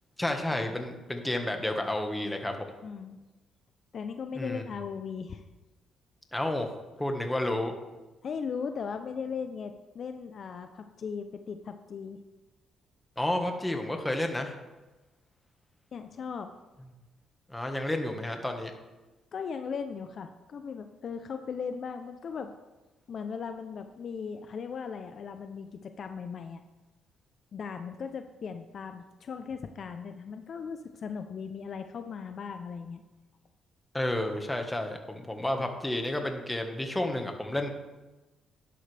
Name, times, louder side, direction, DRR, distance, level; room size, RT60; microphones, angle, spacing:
voice 1, 0.2-2.7 4.3-4.6 6.3-6.7 7.0-7.7 13.2-14.5 17.5-18.7 33.9-37.7, left 1 dB, 10° left, 4 dB, 1.5 m, -31 dB
voice 2, 2.8-3.2 3.9-5.4 8.2-12.2 15.9-16.5 19.3-22.5 23.1-26.6 27.5-33.0, left 6 dB, 55° left, 7 dB, 0.6 m, -38 dB
11.5 x 11.0 x 3.4 m, 1.1 s
cardioid pair, 90°, 0 cm